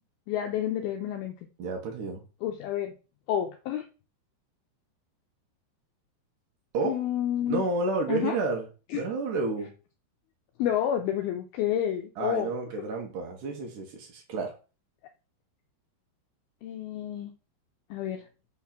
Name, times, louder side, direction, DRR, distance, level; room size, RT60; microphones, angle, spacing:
voice 1, 0.3-1.3 2.4-2.9 3.3-3.8 6.8-7.6 8.1-8.4 8.9-9.0 10.6-12.9 16.6-17.3 17.9-18.3, left 10 dB, 85° left, 5 dB, 2.1 m, -29 dB
voice 2, 1.6-2.2 6.7-7.0 7.5-8.6 8.9-9.7 12.2-14.5, right 3 dB, 70° right, 2 dB, 2.0 m, -30 dB
6.3 x 3.6 x 5.9 m, 0.33 s
omnidirectional pair, 5.2 m